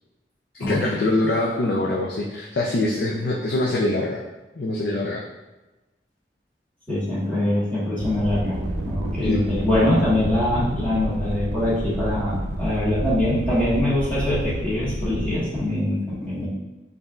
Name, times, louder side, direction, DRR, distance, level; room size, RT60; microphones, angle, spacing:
voice 1, 0.6-4.2 4.6-5.2 9.2-9.4, left 2 dB, 60° left, -2 dB, 0.5 m, -24 dB
voice 2, 6.9-16.5, left 1 dB, 10° left, -10 dB, 1.5 m, -23 dB
sound 1, 8.0-15.4, right 1 dB, 75° right, 0.5 m, -29 dB
5.6 x 2.7 x 2.4 m, 1.1 s
head